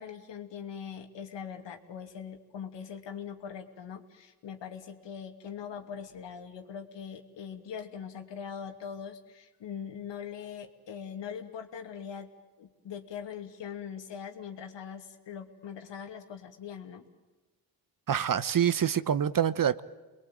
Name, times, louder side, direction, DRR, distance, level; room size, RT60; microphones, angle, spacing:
voice 1, 0.0-12.3 12.6-17.1, left 7 dB, 70° left, 6 dB, 2.6 m, -41 dB
voice 2, 18.1-19.8, right 9 dB, 45° right, 16 dB, 1.1 m, -26 dB
28.5 x 21.5 x 9.1 m, 1.2 s
supercardioid pair, 55°, 45 cm